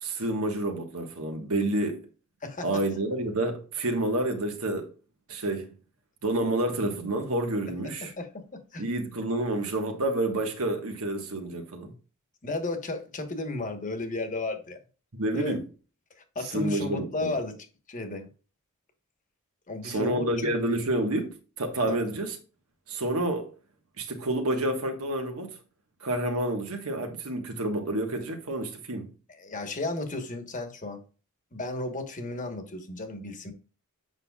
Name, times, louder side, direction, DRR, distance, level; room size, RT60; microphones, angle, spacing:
voice 1, 0.0-2.0 2.6-4.9 5.3-5.7 6.2-8.1 8.8-11.9 15.1-15.6 16.5-17.3 19.8-22.4 22.9-23.5 24.0-25.5 26.0-29.1, right 1 dB, 80° right, 1.4 m, -29 dB
voice 2, 8.0-8.8 12.4-14.8 15.3-15.6 16.2-18.3 19.7-20.5 21.9-22.0 29.4-31.0 31.5-33.5, left 2 dB, 35° left, 1.2 m, -34 dB
7.9 x 5.6 x 2.3 m
head